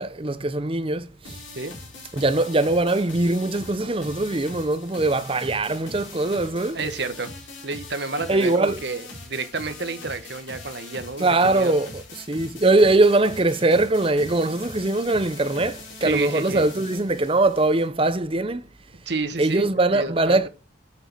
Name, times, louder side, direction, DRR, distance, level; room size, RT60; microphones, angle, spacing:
voice 1, 0.0-1.4 2.1-6.8 8.3-8.8 11.2-18.7 19.4-20.5, right 2 dB, 25° right, 0.7 m, -22 dB
sound 1, 1.2-17.9, left 2 dB, 70° left, 4.9 m, -41 dB
voice 2, 6.4-7.3 7.6-11.8 16.0-16.6 19.1-20.5, right 3 dB, 55° right, 1.3 m, -30 dB
8.6 x 6.4 x 6.1 m
head